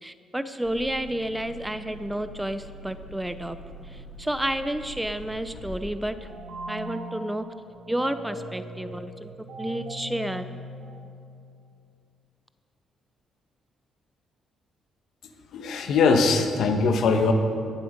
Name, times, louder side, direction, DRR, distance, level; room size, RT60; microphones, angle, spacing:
voice 1, 0.0-3.6 3.8-6.3 6.7-7.4 7.9-10.5, right 1 dB, 5° right, 11 dB, 0.5 m, -31 dB
sound 1, 0.6-5.8, right 1 dB, 20° left, 2.0 m, -44 dB
sound 2, 6.0-11.5, right 1 dB, 75° right, 2.5 m, -40 dB
voice 2, 15.5-17.3, left 4 dB, 75° left, 5 dB, 1.2 m, -21 dB
18.0 x 7.6 x 5.2 m, 2.4 s
cardioid pair, 90°, 0 cm